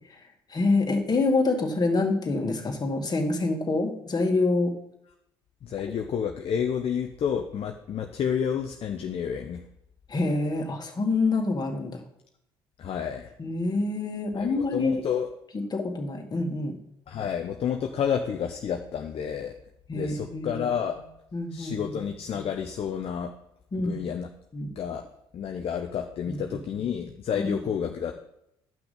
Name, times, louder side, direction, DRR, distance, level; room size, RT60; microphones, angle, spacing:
voice 1, 0.5-4.7 10.1-12.0 13.4-15.1 15.5-16.8 19.9-20.7 21.3-21.9 23.7-24.0 24.5-24.7 26.3-26.6 27.3-27.5, left 3 dB, 30° left, 2 dB, 2.1 m, -26 dB
voice 2, 5.6-9.6 12.8-13.3 14.3-15.3 17.1-19.6 19.9-21.0 21.5-23.3 23.8-24.3 24.8-25.1 25.3-28.2, left 8 dB, 50° left, 4 dB, 0.8 m, -30 dB
10.5 x 5.9 x 5.1 m, 0.79 s
hypercardioid pair, 55°, 13 cm